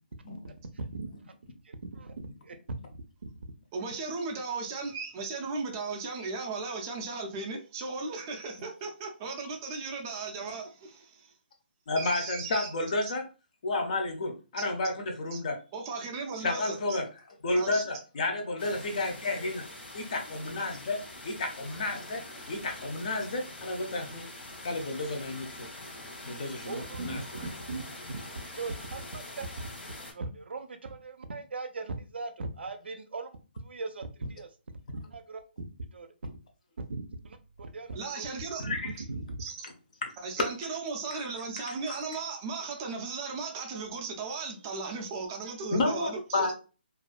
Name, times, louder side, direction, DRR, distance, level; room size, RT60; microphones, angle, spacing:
voice 1, 0.4-1.1 1.6-2.1 2.4-2.6 26.7-28.2 28.5-29.7 30.1-33.4 33.6-34.5 34.9-35.4 35.9-36.1 36.9-38.3 38.6-38.8 39.1-39.2, right 3 dB, 75° right, 8 dB, 0.5 m, -39 dB
voice 2, 3.7-11.3 12.0-12.7 13.0-13.1 14.6-14.7 15.3-15.4 15.7-17.0 17.6-17.8 37.9-38.6 39.4-39.7 40.2-46.5, right 4 dB, 15° right, 2 dB, 0.3 m, -36 dB
voice 3, 11.9-13.3 13.6-15.6 16.4-17.1 17.4-19.6 19.9-22.2 22.5-24.3 24.6-25.7 26.2-27.2 38.6-38.9 40.0-40.1 41.1-41.2 41.7-42.0 45.7-46.5, left 2 dB, 40° left, 4 dB, 0.5 m, -31 dB
sound 1, 18.6-30.1, left 2 dB, 75° left, 0.9 m, -45 dB
2.4 x 2.1 x 2.4 m, 0.33 s
hypercardioid pair, 170°, 6 cm